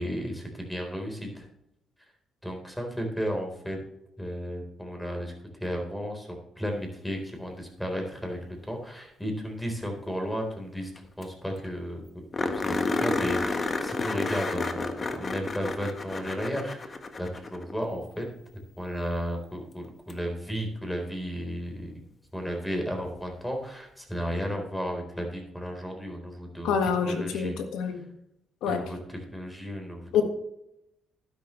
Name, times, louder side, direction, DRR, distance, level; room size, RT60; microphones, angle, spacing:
voice 1, 0.0-1.5 2.4-3.8 4.2-5.3 5.6-18.3 18.8-21.9 22.3-26.7 27.0-27.5 27.9-28.0 28.6-30.2, equal, 5° left, 2 dB, 3.9 m, -34 dB
sound 1, 11.0-11.1 11.2-11.3 11.6-11.7 12.3-17.8 20.1-20.2 23.0-23.1, left 3 dB, 35° left, 1.3 m, -30 dB
voice 2, 26.6-28.1 28.6-28.8 30.1-30.2, left 7 dB, 90° left, 6 dB, 1.7 m, -26 dB
12.0 x 10.5 x 3.2 m, 0.81 s
cardioid pair, 90°, 0 cm